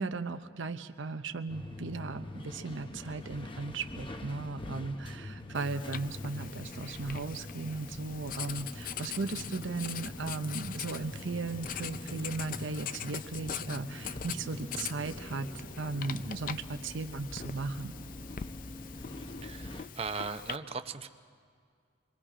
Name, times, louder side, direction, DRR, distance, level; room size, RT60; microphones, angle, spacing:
voice 1, 0.0-18.0, right 3 dB, 75° right, 8 dB, 0.7 m, -37 dB
sound 1, 1.5-19.8, left 1 dB, 25° left, 0.8 m, -44 dB
Writing, 5.5-20.6, left 8 dB, 45° left, 0.4 m, -43 dB
voice 2, 19.4-21.1, right 4 dB, 30° right, 8 dB, 0.7 m, -38 dB
27.5 x 21.5 x 5.0 m, 2.1 s
head